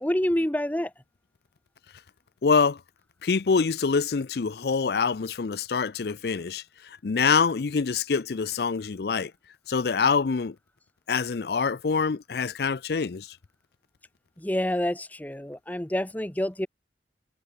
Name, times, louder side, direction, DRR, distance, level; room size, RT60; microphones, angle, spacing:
voice 1, 0.0-0.9 14.4-16.7, left 1 dB, 10° left, 0.8 m, -27 dB
voice 2, 2.4-2.8 3.2-6.6 7.0-9.3 9.7-10.6 11.1-13.4, left 5 dB, 60° left, 0.5 m, -25 dB
head